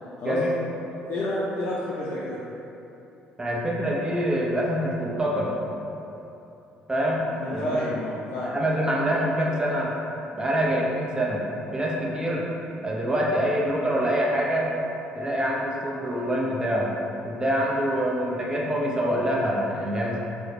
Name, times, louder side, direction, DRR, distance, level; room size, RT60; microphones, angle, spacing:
voice 1, 1.1-2.4 7.3-8.6, left 1 dB, 55° left, -7 dB, 0.4 m, -29 dB
voice 2, 3.4-5.6 6.9-7.9 8.4-10.0 10.3-11.5 11.7-12.5 12.8-14.7 15.1-16.9 17.2-20.2, equal, 15° right, -3 dB, 0.7 m, -25 dB
3.6 x 2.2 x 3.3 m, 2.9 s
hypercardioid pair, 55°, 4 cm